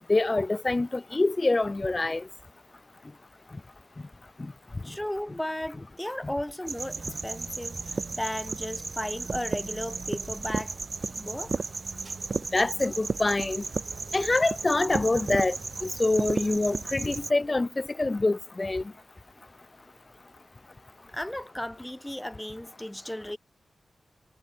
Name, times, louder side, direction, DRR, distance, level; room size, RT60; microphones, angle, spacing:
voice 1, 0.1-2.2 12.5-13.6 14.1-15.6 15.8-18.8, left 2 dB, 25° left, 1.2 m, -25 dB
voice 2, 4.8-10.7 11.2-11.7 21.1-23.4, left 1 dB, 5° left, 7.2 m, -35 dB
sound 1, 6.7-17.3, right 4 dB, 45° right, 1.5 m, -34 dB
wide cardioid pair, 135°, 0 cm